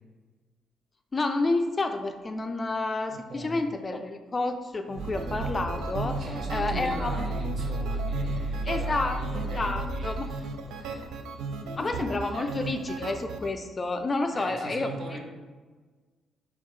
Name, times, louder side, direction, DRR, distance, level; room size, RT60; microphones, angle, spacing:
voice 1, 1.1-6.2 6.5-7.5 8.7-10.3 11.8-15.2, left 2 dB, 30° left, 6 dB, 0.4 m, -30 dB
voice 2, 3.1-3.6 6.2-11.1 11.8-12.0 12.3-12.5 14.3-15.2, right 1 dB, 55° right, 0 dB, 1.0 m, -40 dB
sound 1, 4.9-13.5, right 3 dB, 85° right, 0.4 m, -36 dB
sound 2, 5.0-10.3, right 1 dB, 15° right, 0.7 m, -33 dB
4.7 x 3.6 x 3.2 m, 1.4 s
cardioid pair, 90°, 0 cm